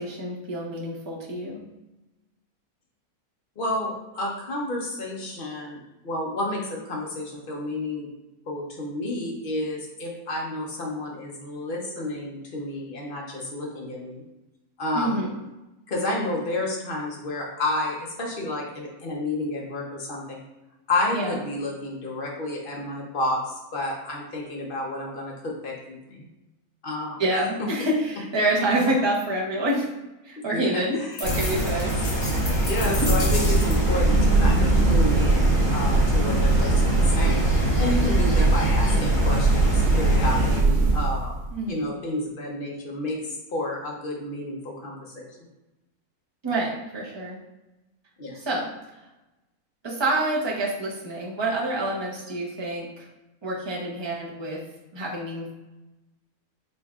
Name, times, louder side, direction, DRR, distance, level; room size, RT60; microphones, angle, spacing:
voice 1, 0.0-1.6 14.9-15.3 21.1-21.4 27.2-29.9 30.2-31.9 41.5-41.9 46.4-47.4 48.3-48.7 49.8-53.1 53.4-54.6 54.9-55.5, right 1 dB, 25° right, -3 dB, 0.7 m, -27 dB
voice 2, 3.6-5.8 6.0-8.1 8.5-14.2 14.8-15.2 15.9-20.4 20.9-26.2 26.8-27.2 30.5-31.2 32.6-41.3 41.7-45.3 48.2-48.4, left 2 dB, 40° left, -2 dB, 0.9 m, -30 dB
sound 1, 31.2-34.0, left 2 dB, 90° left, 1.9 m, -34 dB
sound 2, 31.2-40.6, right 1 dB, 10° left, 1.4 m, -26 dB
sound 3, 32.3-41.5, right 2 dB, 65° right, 0.4 m, -21 dB
5.3 x 3.2 x 2.4 m, 1.0 s
omnidirectional pair, 1.6 m